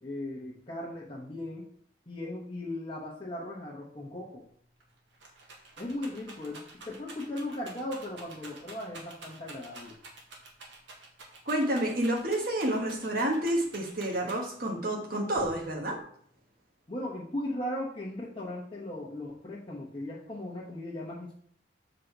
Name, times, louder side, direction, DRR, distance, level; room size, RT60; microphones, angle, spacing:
voice 1, 0.0-1.7 2.1-4.4 5.8-10.0 16.9-21.4, left 1 dB, 30° left, -8 dB, 1.2 m, -37 dB
Rattle, 4.4-4.5 4.8-14.7 15.4-16.0, right 3 dB, 75° right, 1.6 m, -49 dB
voice 2, 11.4-16.0, right 1 dB, 50° right, 0 dB, 1.4 m, -29 dB
7.4 x 4.0 x 4.5 m, 0.63 s
head